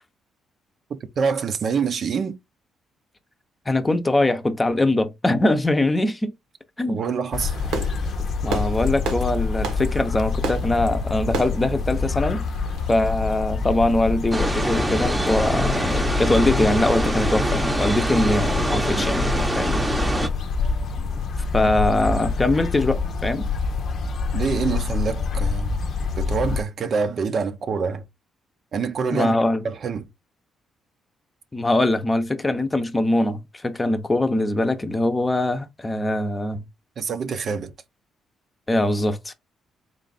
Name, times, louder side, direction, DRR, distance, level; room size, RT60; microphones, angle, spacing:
voice 1, 0.9-2.4 6.9-7.5 18.9-19.0 21.6-21.7 24.3-25.8 26.2-28.0 28.7-29.4 29.6-30.1 37.0-37.7, right 5 dB, 55° right, 0.6 m, -26 dB
voice 2, 3.7-6.3 6.8-7.0 8.4-12.4 12.9-15.9 16.2-19.2 19.5-19.8 21.5-23.4 29.1-29.6 31.5-36.6 38.7-39.3, left 2 dB, 20° left, 0.7 m, -22 dB
sound 1, 7.3-26.6, left 4 dB, 55° left, 0.6 m, -26 dB
Fireworks, 7.4-13.0, right 4 dB, 90° right, 1.3 m, -33 dB
sound 2, 14.3-20.3, right 1 dB, 15° right, 0.8 m, -25 dB
3.7 x 2.5 x 4.0 m
cardioid pair, 90°, 0 cm